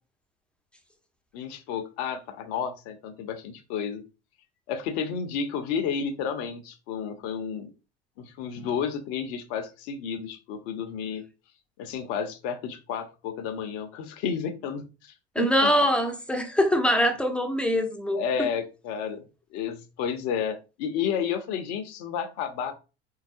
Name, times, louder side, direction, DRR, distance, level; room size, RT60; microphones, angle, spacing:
voice 1, 1.3-4.0 4.7-7.7 8.2-11.2 11.8-15.7 18.1-19.2 19.5-22.7, left 7 dB, 50° left, 0.8 m, -31 dB
voice 2, 15.3-18.2, equal, 5° left, 0.8 m, -23 dB
4.7 x 4.0 x 2.6 m
figure-of-eight pair, 70°, 32 cm